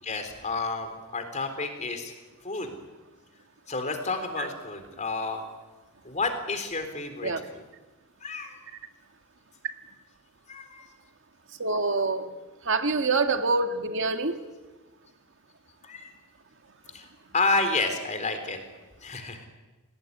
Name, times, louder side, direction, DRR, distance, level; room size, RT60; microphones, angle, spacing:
voice 1, 0.0-2.1 2.4-2.7 3.7-5.4 6.0-7.6 8.2-8.5 10.5-10.9 15.8-16.1 16.9-17.1 17.3-18.6 19.0-19.5, left 3 dB, 30° left, 7 dB, 3.8 m, -30 dB
voice 2, 11.6-12.3 12.7-14.4, right 3 dB, 55° right, 6 dB, 2.0 m, -26 dB
28.5 x 18.5 x 9.7 m, 1.2 s
head